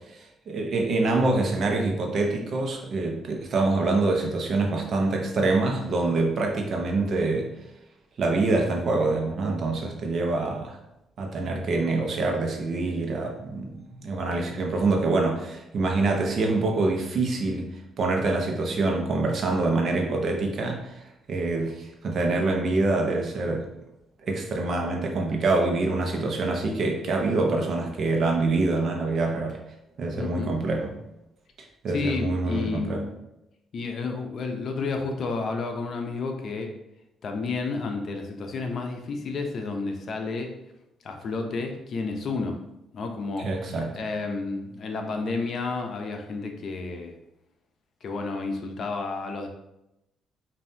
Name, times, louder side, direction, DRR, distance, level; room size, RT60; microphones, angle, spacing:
voice 1, 0.5-7.5 8.2-10.8 11.2-17.7 18.0-20.9 21.3-23.6 24.3-29.6 30.0-30.9 31.8-33.0 43.4-43.9, right 3 dB, 55° right, 1 dB, 0.9 m, -25 dB
voice 2, 30.2-30.6 31.9-33.1 33.7-36.7 37.2-40.5 41.0-42.6 42.9-43.5 43.9-47.2 48.0-49.5, left 3 dB, 55° left, 4 dB, 0.6 m, -31 dB
5.3 x 2.7 x 2.7 m, 0.89 s
cardioid pair, 95°, 0 cm